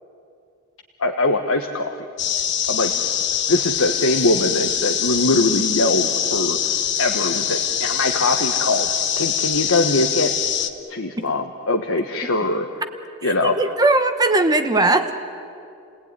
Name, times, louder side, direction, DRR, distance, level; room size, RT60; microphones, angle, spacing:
voice 1, 1.0-2.0 2.7-2.9 3.5-6.6 7.0-8.9 9.2-10.3 10.9-12.7 13.2-13.6, left 2 dB, 80° left, 3 dB, 1.4 m, -22 dB
sound 1, 2.2-10.7, left 9 dB, 55° left, 1.2 m, -23 dB
voice 2, 13.4-15.1, right 2 dB, 20° right, 7 dB, 1.2 m, -18 dB
30.0 x 19.0 x 9.7 m, 2.5 s
head